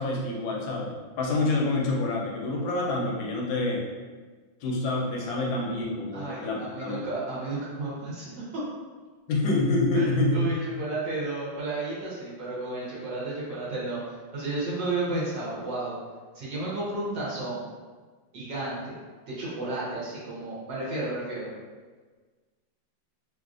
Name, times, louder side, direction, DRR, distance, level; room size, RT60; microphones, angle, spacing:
voice 1, 0.0-3.8 4.6-7.0 9.3-10.5, left 2 dB, 80° left, -2 dB, 1.4 m, -27 dB
voice 2, 6.1-8.6 9.9-16.0 16.3-17.7 18.3-18.9 19.3-21.5, right 2 dB, 70° right, -7 dB, 1.4 m, -32 dB
3.4 x 2.4 x 2.4 m, 1.4 s
omnidirectional pair, 2.1 m